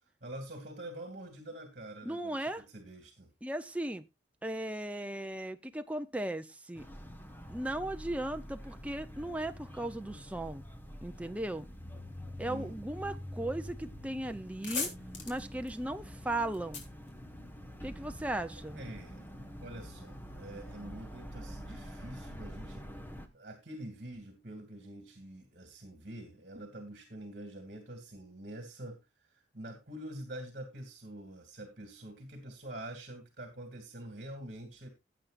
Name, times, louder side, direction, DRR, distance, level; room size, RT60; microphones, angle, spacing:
voice 1, 0.2-3.3 12.5-12.8 18.7-19.3 19.6-22.8 23.3-29.0 29.5-34.9, right 1 dB, 50° right, 2.7 m, -46 dB
voice 2, 2.1-2.6 3.4-4.0 4.4-6.9 7.5-10.6 11.0-11.7 12.4-14.9 15.3-16.8 17.8-18.8, right 1 dB, 5° right, 0.6 m, -37 dB
sound 1, 6.7-23.3, equal, 10° left, 1.4 m, -46 dB
sound 2, 14.6-18.0, left 4 dB, 80° left, 3.5 m, -41 dB
17.0 x 8.4 x 2.5 m
head